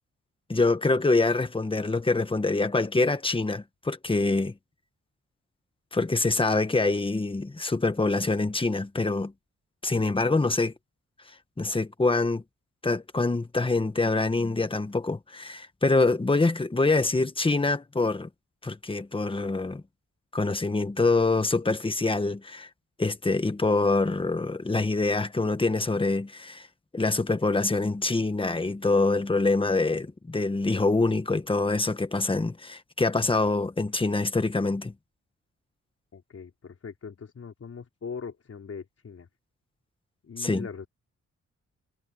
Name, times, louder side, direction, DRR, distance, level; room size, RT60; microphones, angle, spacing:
voice 1, 0.5-4.5 5.9-9.3 9.8-10.7 11.6-12.4 12.8-18.3 18.6-19.8 20.3-22.7 23.0-26.7 26.9-34.9 40.4-40.7, left 3 dB, 15° left, 1.4 m, -25 dB
voice 2, 36.1-39.3 40.2-40.9, left 6 dB, 50° left, 4.5 m, -40 dB
wide cardioid pair, 130°, 30 cm